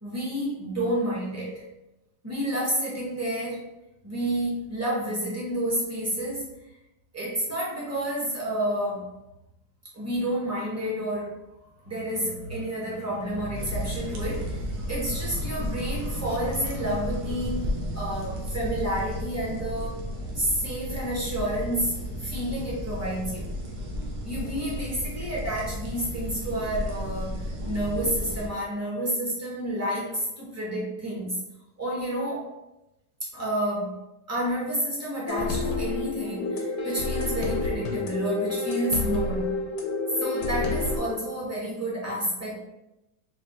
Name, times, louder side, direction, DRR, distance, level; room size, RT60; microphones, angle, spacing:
voice 1, 0.0-1.6 2.2-3.7 4.0-6.5 7.1-9.1 9.9-11.4 11.8-20.0 20.3-23.5 24.2-27.4 27.6-31.3 31.8-32.5 33.3-34.0 34.3-39.6 40.2-42.6, right 1 dB, 10° right, -6 dB, 0.9 m, -30 dB
sound 1, 13.5-28.5, equal, 70° right, 1.3 m, -33 dB
sound 2, 35.3-41.0, left 3 dB, 80° left, 1.3 m, -29 dB
4.2 x 3.0 x 3.1 m, 0.93 s
omnidirectional pair, 1.8 m